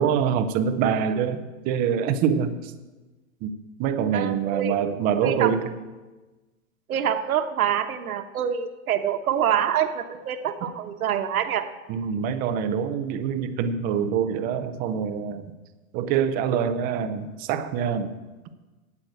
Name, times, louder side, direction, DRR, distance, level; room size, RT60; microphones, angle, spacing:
voice 1, 0.0-2.7 3.4-3.5 3.8-5.7 11.9-15.5 15.9-18.1, right 7 dB, 20° right, 9 dB, 0.6 m, -25 dB
voice 2, 4.1-4.8 5.2-5.5 6.9-11.7, right 9 dB, 85° right, 8 dB, 1.2 m, -26 dB
8.8 x 8.4 x 7.8 m, 1.2 s
hypercardioid pair, 145°, 42 cm